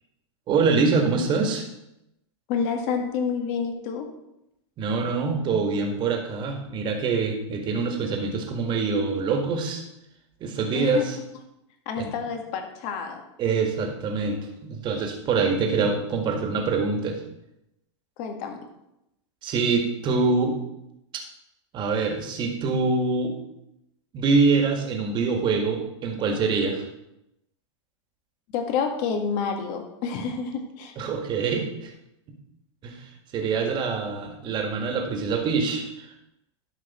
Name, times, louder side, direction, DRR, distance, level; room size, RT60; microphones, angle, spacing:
voice 1, 0.5-1.7 4.8-9.8 10.4-11.2 12.0-12.1 13.4-17.2 19.4-20.6 21.7-23.4 24.1-26.9 31.0-31.9 32.8-36.1, right 4 dB, 30° right, 3 dB, 1.8 m, -25 dB
voice 2, 2.5-4.1 10.7-11.1 11.8-13.2 18.2-18.6 28.5-30.9, left 6 dB, 50° left, 5 dB, 1.7 m, -28 dB
12.0 x 5.2 x 4.3 m, 0.87 s
hypercardioid pair, 125°, 15 cm